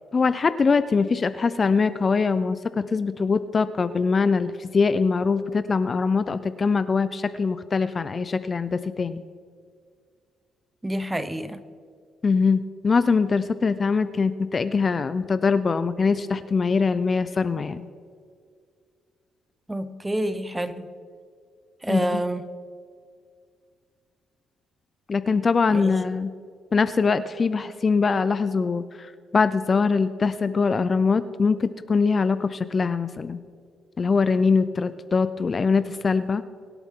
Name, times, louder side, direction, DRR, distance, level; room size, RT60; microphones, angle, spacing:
voice 1, 0.1-9.2 12.2-17.9 21.9-22.2 25.1-26.3 26.7-33.4 34.0-36.4, left 4 dB, 35° left, 13 dB, 0.5 m, -23 dB
voice 2, 10.8-11.6 19.7-20.9 21.8-22.4 25.7-25.9, right 1 dB, 10° right, 12 dB, 0.8 m, -28 dB
23.5 x 8.2 x 3.8 m, 2.1 s
cardioid pair, 90°, 0 cm